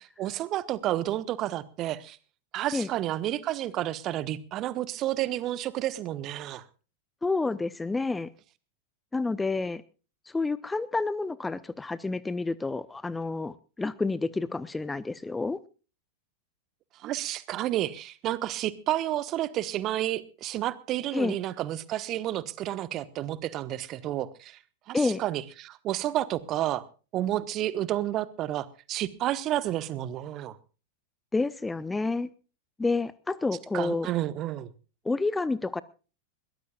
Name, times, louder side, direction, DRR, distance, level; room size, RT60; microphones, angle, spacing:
voice 1, 0.2-2.2 2.5-6.6 17.0-24.6 24.9-26.8 27.1-30.6 33.7-34.7, right 13 dB, 35° right, 1.3 m, -30 dB
voice 2, 7.2-8.3 9.1-9.8 10.3-15.6 21.1-21.4 24.9-25.2 31.3-32.3 32.8-34.1 35.0-35.8, left 3 dB, 10° left, 0.7 m, -29 dB
22.0 x 18.5 x 2.4 m
figure-of-eight pair, 90°, 0 cm